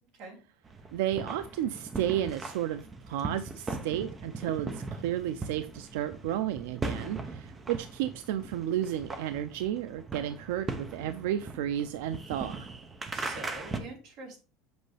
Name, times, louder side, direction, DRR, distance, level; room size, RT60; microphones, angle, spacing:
sound 1, 0.6-13.8, right 3 dB, 15° right, 0.7 m, -39 dB
voice 1, 0.9-12.7, right 11 dB, 85° right, 11 dB, 0.4 m, -32 dB
voice 2, 13.1-14.4, right 2 dB, 50° right, -1 dB, 2.9 m, -44 dB
7.8 x 5.3 x 3.3 m, 0.35 s
cardioid pair, 175°, 0 cm